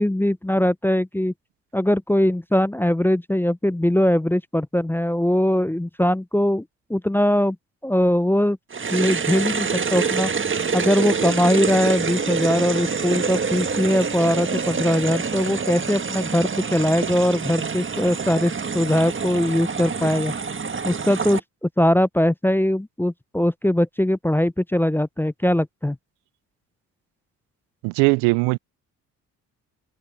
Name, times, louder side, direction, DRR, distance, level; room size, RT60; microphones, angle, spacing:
voice 1, 0.0-1.3 1.7-6.6 6.9-7.6 7.8-8.6 8.9-10.3 10.7-20.3 20.8-26.0, left 1 dB, 5° left, 0.5 m, -21 dB
sound 1, 8.7-21.4, right 5 dB, 30° right, 1.6 m, -26 dB
voice 2, 27.8-28.6, right 28 dB, 85° right, 0.6 m, -19 dB
hypercardioid pair, 55°, 38 cm